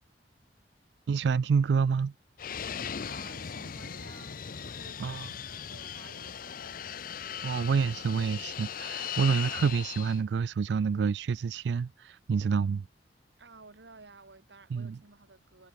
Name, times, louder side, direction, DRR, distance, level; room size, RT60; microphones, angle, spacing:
voice 1, 1.1-2.1 5.0-5.3 7.4-12.9 14.7-15.0, right 5 dB, 75° right, 0.4 m, -28 dB
Fixed-wing aircraft airplane, 2.4-10.2, left 8 dB, 55° left, 0.7 m, -38 dB
voice 2, 3.1-6.8 13.4-15.7, right 3 dB, 90° right, 1.8 m, -54 dB
head